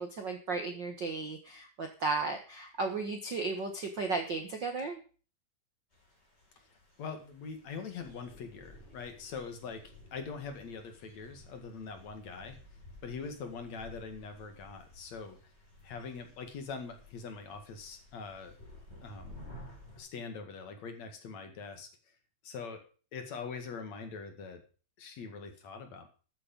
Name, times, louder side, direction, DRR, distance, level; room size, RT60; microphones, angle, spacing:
voice 1, 0.0-5.0, right 3 dB, 90° right, 5 dB, 0.9 m, -35 dB
sound 1, 5.9-20.0, left 1 dB, 15° left, 5.7 m, -54 dB
voice 2, 7.0-12.6 13.0-15.4 15.8-18.5 19.0-19.5 19.9-21.9 22.4-24.6 25.0-26.1, left 5 dB, 50° left, 6 dB, 2.8 m, -43 dB
13.5 x 8.9 x 5.3 m, 0.38 s
omnidirectional pair, 4.4 m